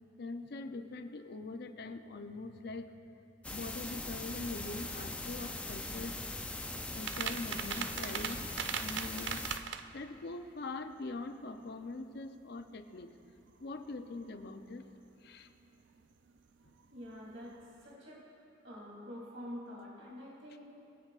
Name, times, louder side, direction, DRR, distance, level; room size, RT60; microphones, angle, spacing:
voice 1, 0.2-2.9 3.5-6.5 6.9-8.5 8.8-9.5 9.9-13.1 13.6-14.9 15.2-15.5, left 3 dB, 55° left, 8 dB, 0.6 m, -43 dB
sound 1, 3.4-9.6, left 2 dB, 5° left, 0.4 m, -41 dB
sound 2, 4.3-17.9, right 8 dB, 65° right, 0.4 m, -45 dB
voice 2, 16.9-17.5 17.8-18.3 18.6-20.6, equal, 85° right, -6 dB, 2.9 m, -46 dB
24.0 x 8.3 x 2.5 m, 2.8 s
head